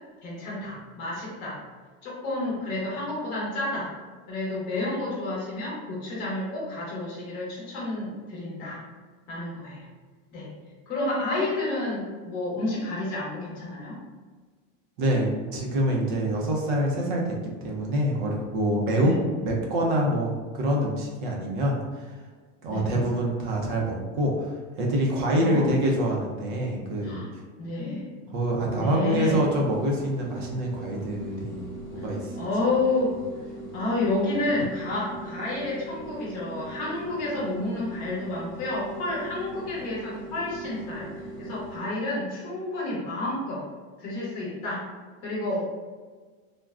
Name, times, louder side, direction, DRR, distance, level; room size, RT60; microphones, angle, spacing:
voice 1, 0.2-1.6 2.0-3.9 4.3-8.8 9.3-9.9 10.3-10.5 10.9-14.0 19.0-19.2 22.7-22.9 25.3-25.8 27.0-27.3 27.6-28.2 28.8-29.5 32.0-32.1 32.4-33.1 33.7-43.6 44.0-44.8 45.2-45.6, left 2 dB, 30° left, -6 dB, 0.8 m, -30 dB
voice 2, 15.0-17.4 17.6-19.1 19.4-22.1 22.6-27.2 28.3-32.4, right 1 dB, 40° right, -1 dB, 0.5 m, -26 dB
sound 1, 29.2-41.9, right 1 dB, 80° left, 1.1 m, -40 dB
3.5 x 2.1 x 2.3 m, 1.5 s
supercardioid pair, 175°, 41 cm